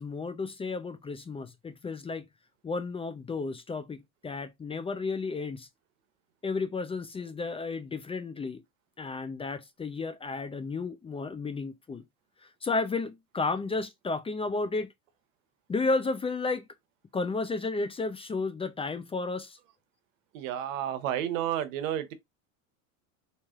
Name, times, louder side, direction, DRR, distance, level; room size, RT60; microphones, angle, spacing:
voice 1, 0.0-2.2 2.6-5.7 6.4-8.6 9.0-12.0 12.4-14.9 15.7-16.6 17.1-19.6, left 3 dB, 15° left, 0.5 m, -32 dB
voice 2, 20.3-22.1, right 11 dB, 85° right, 0.9 m, -31 dB
4.2 x 3.2 x 2.4 m
supercardioid pair, 115°, 38 cm